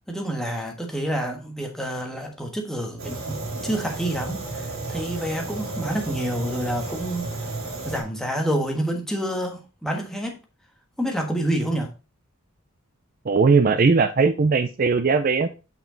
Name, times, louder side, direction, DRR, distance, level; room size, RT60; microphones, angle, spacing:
voice 1, 0.1-7.3 7.6-10.3 11.0-11.9, right 1 dB, ahead, 1 dB, 1.4 m, -28 dB
Fire, 3.0-8.0, right 2 dB, 80° right, 2.9 m, -32 dB
voice 2, 13.3-15.5, right 4 dB, 40° right, 9 dB, 0.4 m, -19 dB
7.0 x 5.7 x 3.9 m, 0.31 s
head